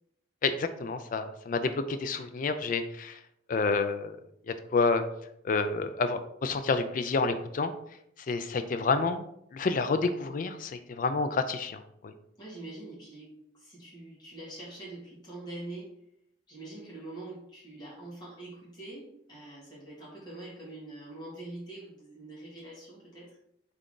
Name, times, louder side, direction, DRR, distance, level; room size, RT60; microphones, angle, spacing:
voice 1, 0.4-3.2 3.5-4.2 4.5-5.0 5.4-7.7 8.3-9.2 9.5-12.1, left 4 dB, 40° left, 9 dB, 0.3 m, -29 dB
voice 2, 12.4-15.9 16.5-23.4, right 2 dB, 20° left, -7 dB, 1.8 m, -44 dB
3.8 x 3.5 x 3.7 m, 0.76 s
head